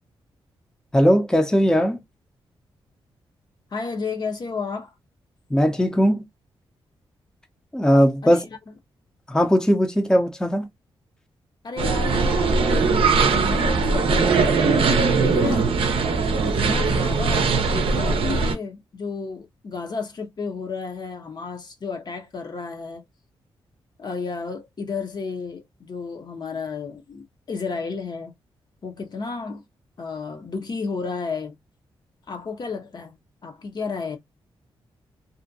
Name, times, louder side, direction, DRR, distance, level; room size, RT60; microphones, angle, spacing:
voice 1, 0.9-2.0 5.5-6.3 7.7-8.4 9.3-10.7, equal, 5° left, 0.5 m, -19 dB
voice 2, 3.7-4.9 8.2-8.6 11.6-14.9 15.2-15.7 16.4-23.0 24.0-28.3 28.8-29.6 30.0-31.5 32.3-33.2 33.4-34.2, left 4 dB, 45° left, 0.6 m, -32 dB
sound 1, 11.8-18.6, right 4 dB, 70° right, 0.5 m, -20 dB
2.5 x 2.1 x 2.6 m
cardioid pair, 80°, 10 cm